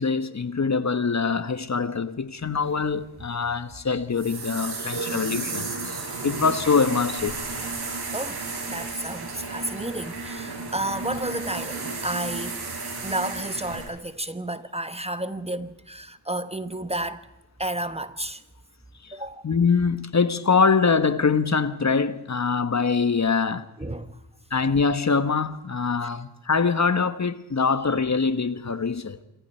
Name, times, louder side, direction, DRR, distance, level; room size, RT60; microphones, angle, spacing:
voice 1, 0.0-7.4 19.4-23.7 24.5-29.2, left 5 dB, 40° left, 1.3 m, -24 dB
sound 1, 2.7-13.9, right 3 dB, 60° right, 7.9 m, -33 dB
voice 2, 8.7-12.6 13.0-17.2 17.6-18.4 19.1-19.4 23.8-24.2, right 1 dB, 15° right, 1.2 m, -31 dB
27.0 x 25.0 x 4.5 m
cardioid pair, 70°, 43 cm